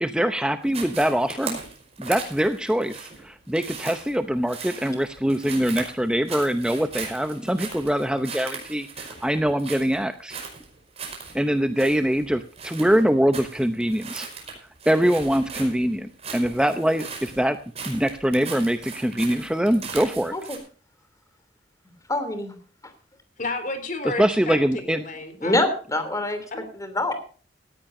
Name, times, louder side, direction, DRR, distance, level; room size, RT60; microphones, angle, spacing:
voice 1, 0.0-1.6 2.0-10.4 11.3-14.3 14.9-17.6 17.8-20.3 24.2-25.0, equal, 5° right, 8 dB, 0.7 m, -23 dB
sound 1, 0.7-20.6, right 5 dB, 35° right, 5.3 m, -38 dB
voice 2, 22.1-22.5 22.8-22.9 25.4-26.4 26.7-27.2, left 2 dB, 20° left, 8 dB, 3.1 m, -25 dB
voice 3, 23.4-25.6 26.5-26.7, left 2 dB, 45° left, 8 dB, 3.9 m, -31 dB
18.0 x 14.5 x 2.7 m, 0.40 s
head